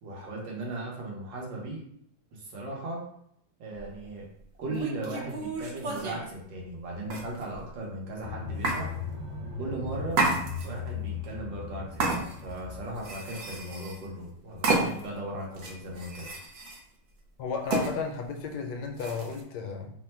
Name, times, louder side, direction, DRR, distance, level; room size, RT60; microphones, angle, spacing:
voice 1, 0.0-1.8 2.3-3.0 3.6-4.3 4.6-8.9 9.6-10.2 10.6-16.3, right 2 dB, 80° right, -2 dB, 1.7 m, -37 dB
sound 1, 3.7-3.9 4.7-6.2 7.1-7.7 8.6-8.8 10.1-10.9 12.0-12.6 13.0-14.1 14.6-15.2 15.5-16.8 17.7-17.9 19.0-19.4, right 3 dB, 60° right, 0.9 m, -30 dB
sound 2, 8.2-13.2, left 5 dB, 40° right, 0.5 m, -38 dB
voice 2, 17.4-19.9, left 5 dB, 75° left, 2 dB, 1.2 m, -33 dB
3.6 x 2.2 x 4.3 m, 0.71 s
omnidirectional pair, 2.0 m